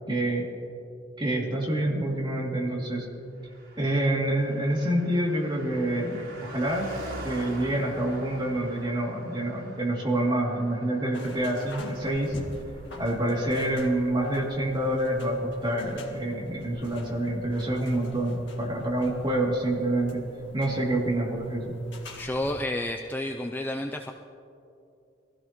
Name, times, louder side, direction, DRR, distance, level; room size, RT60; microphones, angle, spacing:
voice 1, 0.1-0.5 1.2-3.1 3.8-6.9 7.2-12.3 13.0-20.2 20.5-21.7, right 1 dB, 25° right, -3 dB, 2.7 m, -27 dB
Car passing by, 3.4-15.2 15.5-15.6, right 1 dB, 85° right, 3.7 m, -45 dB
sound 1, 11.1-22.6, left 1 dB, 65° left, 1.9 m, -45 dB
voice 2, 22.1-24.1, left 1 dB, 10° left, 3 dB, 0.5 m, -30 dB
23.5 x 16.0 x 3.1 m, 2.6 s
head